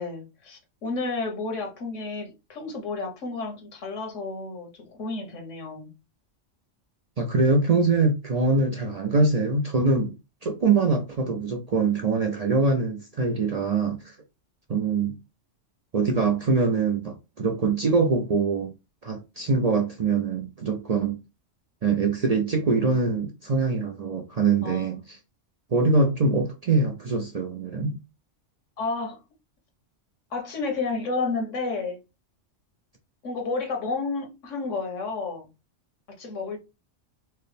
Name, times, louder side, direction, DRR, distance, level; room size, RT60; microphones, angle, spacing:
voice 1, 0.0-5.9 24.6-25.1 28.8-29.2 30.3-32.0 33.2-35.5 36.2-36.6, left 3 dB, 85° left, 1.4 m, -31 dB
voice 2, 7.2-10.1 10.4-14.2 14.7-15.2 15.9-18.7 19.0-21.2 21.8-25.2 25.7-28.0, right 3 dB, 50° right, 0.5 m, -23 dB
4.5 x 2.1 x 3.3 m
omnidirectional pair, 1.2 m